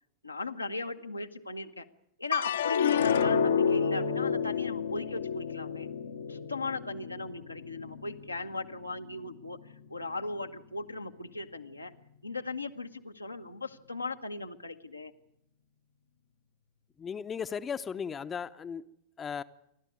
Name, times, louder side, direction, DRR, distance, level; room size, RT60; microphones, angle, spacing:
voice 1, 0.2-1.9 2.2-5.9 6.3-9.6 9.9-11.9 12.2-15.1, left 2 dB, 85° left, 5 dB, 1.2 m, -38 dB
sound 1, 2.3-8.8 9.2-9.9, left 7 dB, 65° left, 1.0 m, -30 dB
voice 2, 17.0-18.8 19.2-19.4, left 7 dB, 20° left, 11 dB, 0.8 m, -36 dB
29.0 x 12.5 x 9.5 m, 0.77 s
figure-of-eight pair, 90°, 0 cm